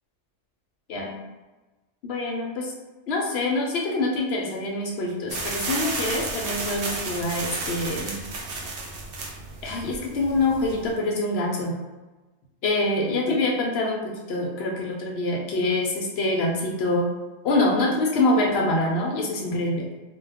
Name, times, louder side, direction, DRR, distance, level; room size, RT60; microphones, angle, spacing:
voice 1, 2.0-2.7 3.1-8.1 9.6-11.8 12.6-17.1 17.4-19.9, left 2 dB, 65° left, -1 dB, 0.8 m, -25 dB
sound 1, 5.3-10.9, right 3 dB, 60° right, 0.7 m, -32 dB
2.3 x 2.2 x 3.4 m, 1.2 s
omnidirectional pair, 1.2 m